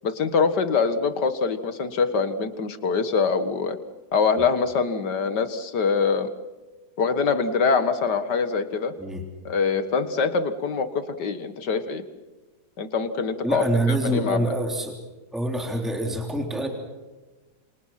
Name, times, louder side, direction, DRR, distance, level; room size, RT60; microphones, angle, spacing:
voice 1, 0.0-3.8 4.1-6.3 7.0-8.9 9.5-12.0 12.8-14.5, left 5 dB, 80° left, 11 dB, 2.2 m, -24 dB
voice 2, 13.4-15.0 15.3-16.7, right 1 dB, ahead, 3 dB, 3.4 m, -26 dB
27.0 x 27.0 x 5.9 m, 1.2 s
omnidirectional pair, 1.8 m